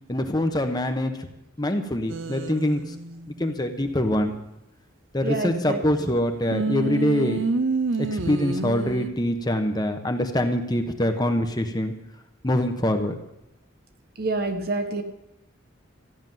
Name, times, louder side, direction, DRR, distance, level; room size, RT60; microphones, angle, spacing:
voice 1, 0.1-1.1 1.6-2.8 3.4-4.3 5.1-7.4 8.0-11.9 12.4-13.2, left 1 dB, 20° left, 6 dB, 1.1 m, -24 dB
sound 1, 2.1-3.6 6.5-9.1, right 4 dB, 75° right, 0.8 m, -28 dB
voice 2, 5.2-6.1 14.2-15.0, right 2 dB, 50° right, 6 dB, 1.3 m, -28 dB
14.5 x 7.1 x 9.3 m, 0.87 s
head